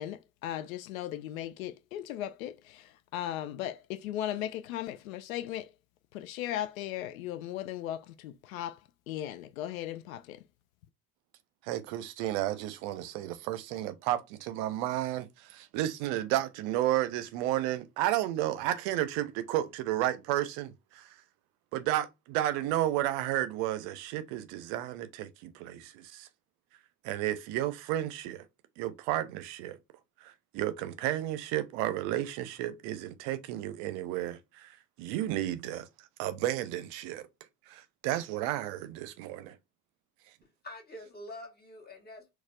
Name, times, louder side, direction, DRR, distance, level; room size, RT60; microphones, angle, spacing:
voice 1, 0.0-5.7 6.1-10.4, left 12 dB, 65° left, 0.5 m, -37 dB
voice 2, 11.6-21.1 21.7-26.3 27.0-28.4 28.8-29.8 30.2-35.9 36.2-37.3 37.7-39.6, right 13 dB, 55° right, 0.7 m, -32 dB
voice 3, 40.4-42.3, left 1 dB, 20° left, 1.7 m, -46 dB
4.1 x 2.4 x 2.3 m
figure-of-eight pair, 55°, 45 cm